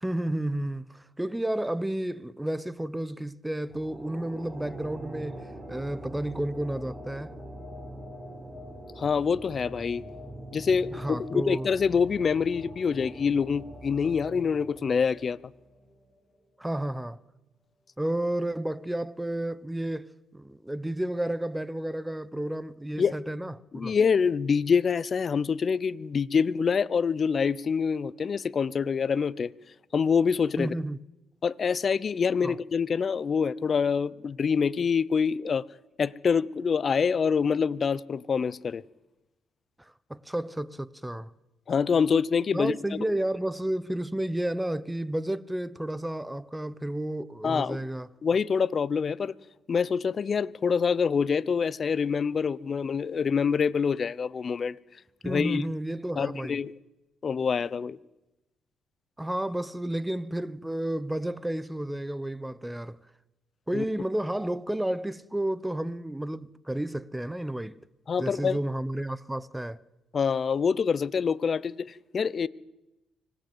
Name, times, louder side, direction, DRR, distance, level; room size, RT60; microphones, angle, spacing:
voice 1, 0.0-7.3 10.9-11.7 16.6-17.2 18.0-24.0 30.6-31.0 32.4-32.6 39.8-41.3 42.5-48.1 55.2-56.6 59.2-63.0 63.7-67.8 68.2-69.8, right 1 dB, 5° right, 0.9 m, -31 dB
sound 1, 3.7-16.2, right 1 dB, 25° right, 7.4 m, -43 dB
voice 2, 8.9-10.0 10.5-15.4 23.0-23.1 23.7-29.5 29.9-30.7 31.4-35.6 36.0-38.8 41.7-43.0 47.4-47.8 48.2-49.3 49.7-54.8 55.3-55.6 56.2-56.7 57.2-58.0 63.7-63.8 68.1-68.6 70.1-72.5, left 6 dB, 45° left, 0.7 m, -26 dB
25.0 x 18.0 x 8.0 m
cardioid pair, 90°, 0 cm